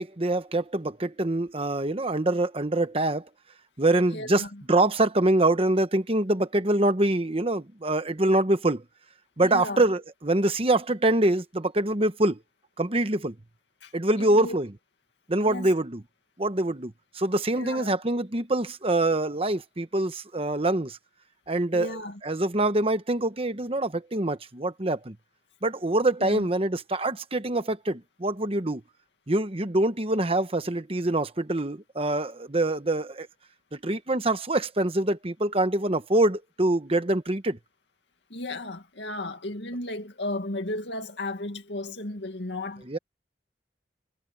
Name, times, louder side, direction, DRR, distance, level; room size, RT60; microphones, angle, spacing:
voice 1, 0.0-3.2 3.8-4.4 4.7-8.8 9.4-12.4 12.8-13.3 13.9-14.7 15.3-16.0 16.4-21.0 21.5-21.9 22.2-25.1 25.6-28.8 29.3-33.3 33.7-37.6 42.9-43.0, right 1 dB, 35° right, 1.2 m, -25 dB
voice 2, 4.1-4.6 9.4-9.8 13.8-13.9 14.2-14.6 15.4-15.7 17.6-18.0 21.7-22.2 26.2-26.5 38.3-42.8, left 1 dB, 80° left, 2.2 m, -34 dB
head